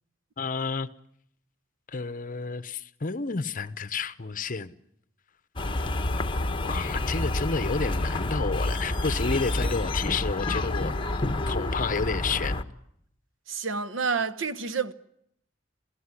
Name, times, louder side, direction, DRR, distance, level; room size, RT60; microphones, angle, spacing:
voice 1, 0.4-0.9 1.9-4.7 6.6-10.9 11.5-12.6, left 4 dB, 45° left, 0.9 m, -30 dB
sound 1, 5.6-12.6, left 2 dB, 25° left, 1.2 m, -28 dB
voice 2, 13.5-14.9, right 5 dB, 75° right, 1.1 m, -29 dB
27.5 x 16.5 x 9.8 m
head